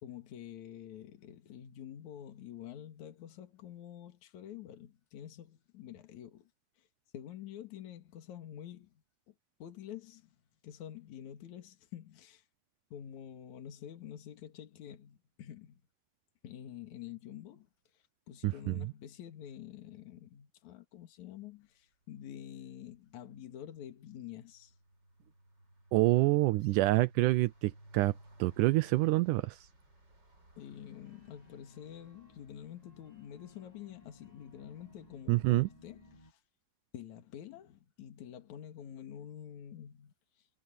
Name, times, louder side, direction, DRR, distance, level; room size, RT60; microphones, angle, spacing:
voice 1, 0.0-6.5 6.8-6.9 7.1-8.9 9.3-9.4 9.6-12.4 12.9-15.8 16.4-24.7 30.6-36.4 36.9-40.5, left 10 dB, 60° left, 3.0 m, -48 dB
voice 2, 18.4-18.7 25.9-28.1 28.4-29.6 35.3-35.7, right 19 dB, 80° right, 1.9 m, -27 dB
sound 1, 21.9-22.3 22.6-35.7, right 1 dB, 30° right, 8.6 m, -62 dB
sound 2, 31.0-36.3, equal, 10° left, 6.3 m, -61 dB
omnidirectional pair, 4.0 m